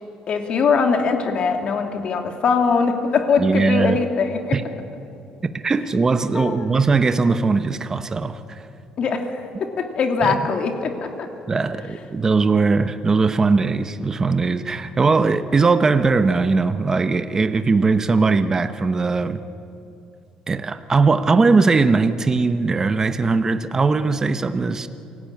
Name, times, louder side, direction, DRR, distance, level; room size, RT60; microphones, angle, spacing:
voice 1, 0.3-4.5 6.3-6.7 9.0-9.3 9.6-11.3, left 5 dB, 50° left, 4 dB, 2.7 m, -21 dB
voice 2, 3.4-4.0 4.5-4.6 5.4-8.6 10.2-10.3 11.5-19.4 20.5-24.9, right 4 dB, 25° right, 10 dB, 0.9 m, -19 dB
28.0 x 17.5 x 8.8 m, 2.7 s
cardioid pair, 125°, 2 cm